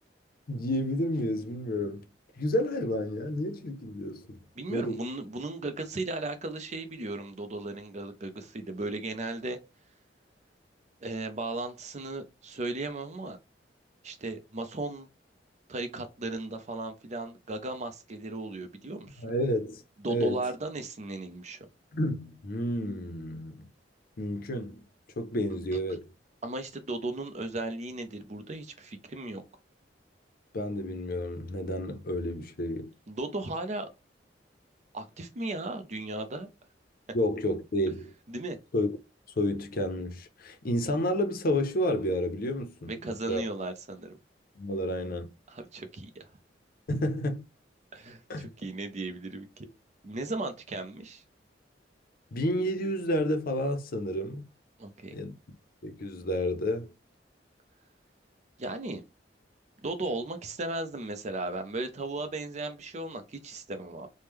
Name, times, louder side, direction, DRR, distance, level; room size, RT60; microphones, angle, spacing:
voice 1, 0.5-2.0 2.4-4.4 4.7-5.0 19.2-19.8 20.1-20.4 21.9-23.7 24.2-24.8 25.2-26.1 30.5-32.9 37.1-38.1 38.7-39.0 39.4-42.9 43.3-43.4 44.6-45.3 46.9-47.5 48.3-48.5 52.3-54.4 55.1-55.3 55.8-56.9, left 1 dB, 55° left, 0.6 m, -30 dB
voice 2, 4.6-9.6 11.0-13.4 14.0-15.1 15.7-19.2 20.0-21.6 26.4-29.4 33.1-33.9 34.9-36.5 38.3-38.6 42.9-44.2 45.5-46.3 47.9-49.7 50.0-51.2 54.8-55.1 58.6-59.0 59.8-64.1, right 2 dB, 40° right, 0.6 m, -36 dB
3.1 x 2.1 x 3.4 m
head